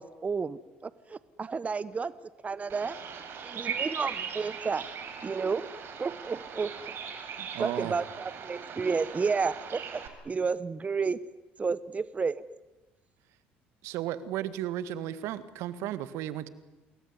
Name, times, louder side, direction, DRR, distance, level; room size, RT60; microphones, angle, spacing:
voice 1, 0.0-2.1 2.4-3.0 3.4-4.9 5.2-5.7 6.0-6.8 7.6-10.0 10.3-11.2 11.6-12.4, right 5 dB, 30° right, 16 dB, 1.0 m, -31 dB
Bird vocalization bird call bird song, 2.7-10.1, right 7 dB, 55° right, 5.5 m, -39 dB
voice 2, 7.4-8.0 13.8-16.5, right 12 dB, 75° right, 13 dB, 1.9 m, -34 dB
28.5 x 21.5 x 9.8 m, 1.1 s
hypercardioid pair, 70°, 5 cm